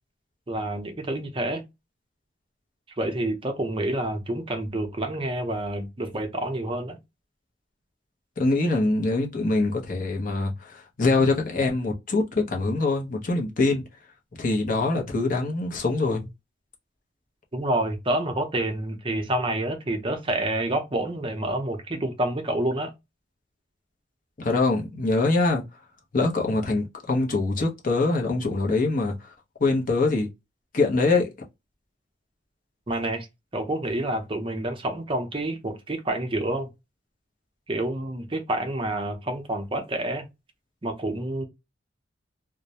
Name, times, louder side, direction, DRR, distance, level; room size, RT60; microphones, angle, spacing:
voice 1, 0.5-1.6 3.0-7.0 17.5-22.9 32.9-33.3 33.5-36.7 37.7-40.3 40.8-41.4, right 1 dB, 30° right, 0.6 m, -28 dB
voice 2, 8.4-13.8 14.4-16.3 24.4-25.6 26.1-29.3 29.6-30.3 30.7-31.3, left 3 dB, 45° left, 0.7 m, -24 dB
2.2 x 2.1 x 2.8 m
head